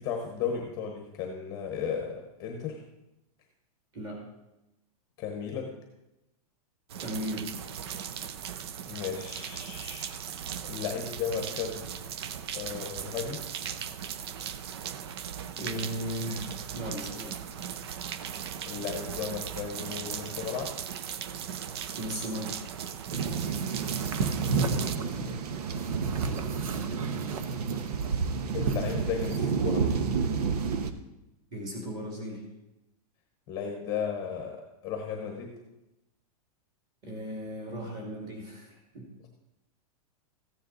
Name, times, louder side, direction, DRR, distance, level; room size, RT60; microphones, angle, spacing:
voice 1, 0.0-2.8 5.2-5.7 8.9-10.1 10.7-11.9 12.5-13.4 18.6-20.8 24.4-25.4 28.5-30.1 33.5-35.5, left 7 dB, 20° left, 2 dB, 1.0 m, -35 dB
sound 1, 6.9-25.0, right 8 dB, 40° right, 0.5 m, -38 dB
voice 2, 7.0-7.5 15.6-17.4 22.0-22.6 31.5-32.4 37.0-39.1, equal, 20° right, 0 dB, 2.5 m, -36 dB
sound 2, 23.1-30.9, right 5 dB, 80° right, 1.1 m, -30 dB
sound 3, 23.7-29.5, right 4 dB, 60° right, 1.1 m, -33 dB
14.5 x 9.4 x 4.0 m, 0.93 s
supercardioid pair, 180°, 20 cm